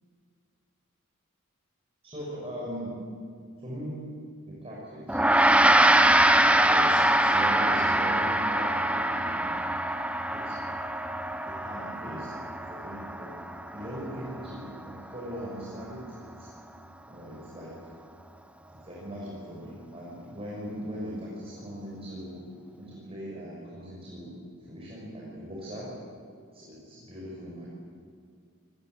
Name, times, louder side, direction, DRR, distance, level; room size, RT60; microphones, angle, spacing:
voice 1, 2.0-3.0 3.6-4.0 4.5-5.2 5.6-5.9 6.4-9.5 10.3-10.6 11.5-12.3 12.7-13.3 13.7-16.5 17.1-17.9 18.7-24.4 24.7-25.9 26.5-27.7, equal, 25° right, -5 dB, 6.5 m, -39 dB
Gong, 5.1-14.7, right 1 dB, 5° right, 1.0 m, -24 dB
29.0 x 20.5 x 8.2 m, 2.2 s
head